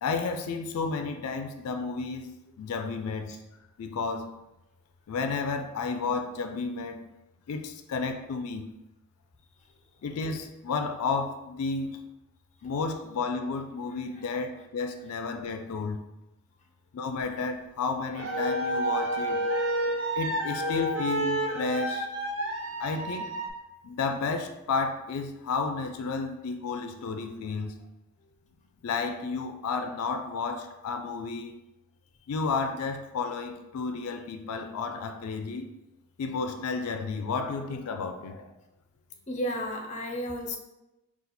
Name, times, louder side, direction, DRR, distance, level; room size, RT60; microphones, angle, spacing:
voice 1, 0.0-3.3 3.8-4.3 5.1-7.0 7.5-8.7 10.0-12.0 12.6-16.0 16.9-19.4 20.1-22.1 22.8-23.4 23.8-27.8 28.8-31.6 32.3-35.7 36.2-38.5, left 4 dB, 85° left, 6 dB, 0.4 m, -32 dB
sound 1, 18.1-23.5, right 1 dB, 55° right, 0.6 m, -29 dB
voice 2, 39.3-40.6, equal, 30° left, 2 dB, 0.5 m, -33 dB
4.0 x 2.4 x 4.1 m, 0.96 s
head